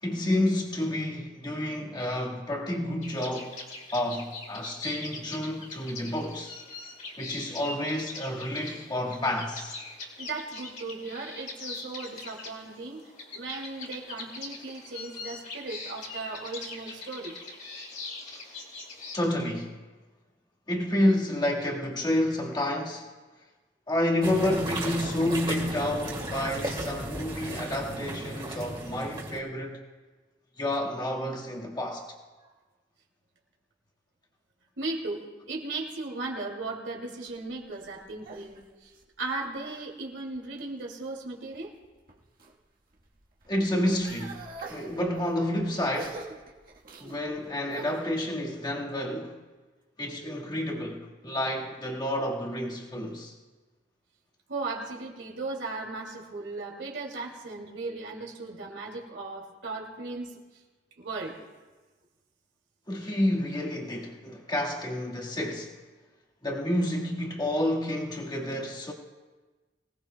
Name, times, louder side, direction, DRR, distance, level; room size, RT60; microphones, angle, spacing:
voice 1, 0.0-3.6 3.9-6.5 7.2-9.8 19.1-19.8 20.7-23.1 23.9-29.8 30.6-32.1 43.5-44.4 44.7-46.2 47.0-49.4 50.0-53.3 62.9-65.7 66.4-68.9, left 1 dB, 25° left, 1.7 m, -29 dB
sound 1, 3.0-19.2, left 3 dB, 45° left, 2.3 m, -42 dB
voice 2, 10.2-13.0 13.3-17.3 34.8-38.9 39.2-41.7 54.5-60.4 61.0-61.4, right 3 dB, 85° right, 2.5 m, -37 dB
sound 2, 24.2-29.4, right 1 dB, 30° right, 2.2 m, -35 dB
sound 3, 37.3-39.9 40.3-40.9 41.5-42.5 42.9-48.1, right 3 dB, 50° right, 1.4 m, -46 dB
24.0 x 17.5 x 2.2 m
head